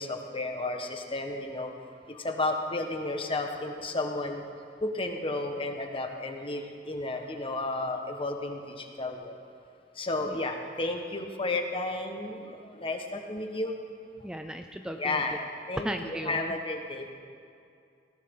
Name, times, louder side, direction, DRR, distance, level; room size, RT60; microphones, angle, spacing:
voice 1, 0.0-1.7 2.1-4.4 4.8-9.4 9.9-13.8 14.8-17.1, left 2 dB, 30° left, 4 dB, 1.4 m, -32 dB
voice 2, 14.2-15.2 15.8-16.5, equal, 5° right, 6 dB, 0.4 m, -36 dB
20.0 x 17.0 x 3.8 m, 2.4 s
head